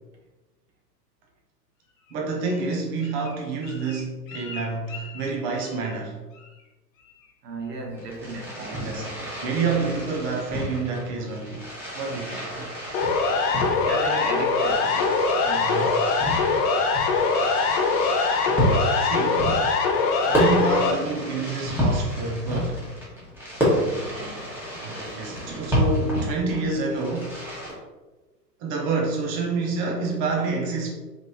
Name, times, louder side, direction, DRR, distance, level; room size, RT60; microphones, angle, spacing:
Bird, 2.0-6.0 6.3-6.7 7.0-7.3 7.6-8.0 8.4-8.5, left 4 dB, 50° left, 1.0 m, -44 dB
voice 1, 2.1-6.2 8.6-9.1 9.4-11.6 11.9-12.5 15.6-16.2 18.6-19.5 20.3-22.8 24.8-27.4 28.6-30.9, right 3 dB, 20° right, 0 dB, 0.4 m, -28 dB
voice 2, 7.4-9.4 12.2-12.7 13.5-15.9 23.8-24.6 25.2-25.8, right 3 dB, 70° right, 0 dB, 1.4 m, -37 dB
Fireworks, 7.9-27.7, equal, 5° right, 1.4 m, -30 dB
Siren, 12.9-20.9, left 4 dB, 30° left, 0.6 m, -22 dB
5.0 x 3.1 x 2.8 m, 1.2 s
hypercardioid pair, 115°, 50 cm